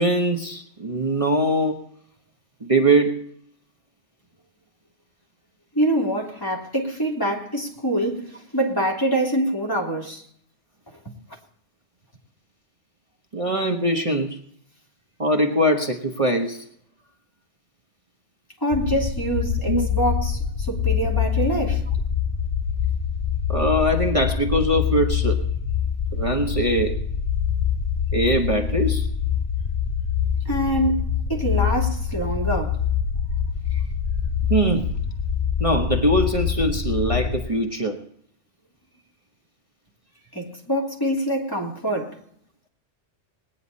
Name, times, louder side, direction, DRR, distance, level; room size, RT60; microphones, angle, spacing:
voice 1, 0.0-1.8 2.6-3.3 13.3-14.4 15.2-16.6 19.7-19.9 23.5-25.4 26.1-27.0 28.1-29.1 33.7-33.8 34.5-34.9 35.6-38.0 41.5-41.6, right 1 dB, 30° right, 1.2 m, -22 dB
voice 2, 5.7-10.2 18.6-21.8 30.4-32.8 40.3-42.2, right 1 dB, 20° left, 3.1 m, -25 dB
sound 1, 18.7-37.4, left 7 dB, 45° left, 1.3 m, -25 dB
20.0 x 10.5 x 4.1 m
omnidirectional pair, 1.2 m